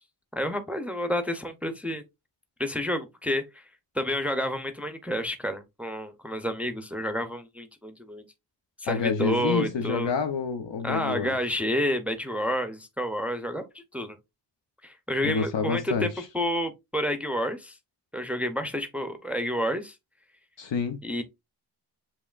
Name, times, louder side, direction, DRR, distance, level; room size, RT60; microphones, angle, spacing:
voice 1, 0.3-2.0 2.6-3.6 3.9-8.2 8.8-10.1 10.8-14.2 14.8-17.8 18.1-19.9 21.0-21.2, equal, 5° right, 0.5 m, -30 dB
voice 2, 8.9-11.4 15.2-16.3 20.6-21.0, left 5 dB, 85° left, 0.8 m, -28 dB
7.1 x 3.0 x 2.4 m
wide cardioid pair, 165°, 43 cm